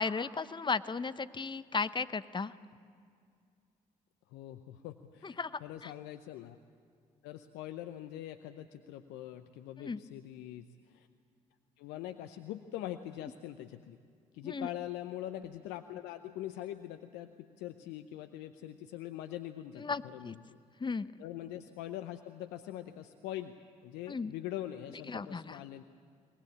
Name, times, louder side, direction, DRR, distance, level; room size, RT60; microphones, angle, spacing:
voice 1, 0.0-2.5 5.2-5.9 9.8-10.0 14.4-14.7 19.8-20.3 20.8-21.1 24.1-24.3 25.1-25.6, left 4 dB, 25° left, 15 dB, 0.8 m, -35 dB
voice 2, 4.3-6.6 7.2-11.1 11.8-14.0 14.3-20.6 21.2-23.6 23.8-25.8, left 13 dB, 75° left, 9 dB, 0.7 m, -43 dB
23.0 x 19.5 x 8.6 m, 2.3 s
hypercardioid pair, 45°, 18 cm